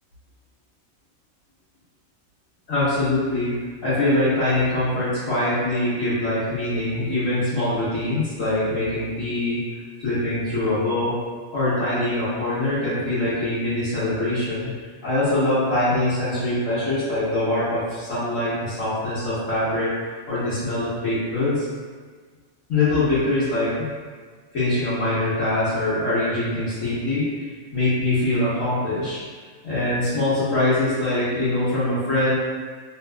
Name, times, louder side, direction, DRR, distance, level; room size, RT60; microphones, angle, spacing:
voice 1, 2.7-3.5 3.8-9.6 10.0-11.1 11.5-14.7 15.0-20.0 20.3-21.7 22.7-23.9 24.5-27.3 27.7-29.2 29.6-32.3, left 1 dB, 70° left, -15 dB, 1.5 m, -23 dB
3.4 x 2.8 x 2.2 m, 1.5 s
omnidirectional pair, 1.4 m